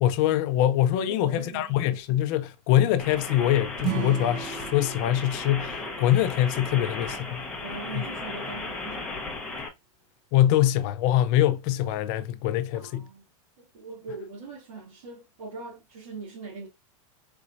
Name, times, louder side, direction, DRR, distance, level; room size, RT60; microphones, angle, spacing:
voice 1, 0.0-7.5 8.0-8.1 10.3-13.1, left 12 dB, 35° left, 0.5 m, -24 dB
voice 2, 1.0-1.7 7.6-9.1 12.7-13.2 13.6-16.7, right 3 dB, 80° right, 2.1 m, -41 dB
sound 1, 3.0-9.7, left 3 dB, 5° left, 0.9 m, -36 dB
Acoustic guitar / Strum, 3.8-7.1, right 14 dB, 30° right, 0.4 m, -36 dB
4.6 x 4.1 x 2.5 m
supercardioid pair, 170°, 18 cm